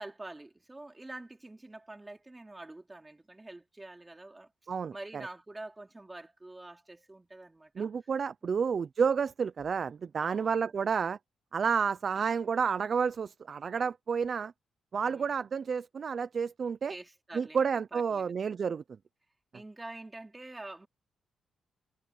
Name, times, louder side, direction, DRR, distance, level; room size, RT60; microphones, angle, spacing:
voice 1, 0.0-4.5 4.9-7.9 8.4-8.7 10.2-10.7 15.0-15.4 16.9-18.4 19.5-20.9, right 2 dB, 10° right, 2.8 m, -46 dB
voice 2, 7.8-11.2 11.5-14.5 14.9-16.9 17.3-18.8, right 6 dB, 40° right, 0.4 m, -30 dB
wide cardioid pair, 165°, 0 cm